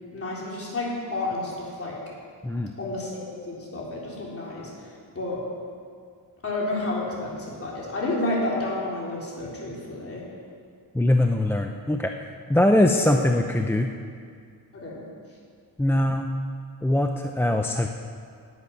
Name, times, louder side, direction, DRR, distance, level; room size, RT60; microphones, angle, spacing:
voice 1, 0.1-1.9 2.8-5.4 6.4-10.2 12.9-13.1 14.7-15.0, left 2 dB, 30° left, -5 dB, 3.8 m, -30 dB
voice 2, 10.9-13.9 15.8-16.3 16.8-17.9, left 1 dB, 5° left, 4 dB, 0.5 m, -22 dB
12.0 x 8.1 x 9.6 m, 2.2 s
wide cardioid pair, 135°, 42 cm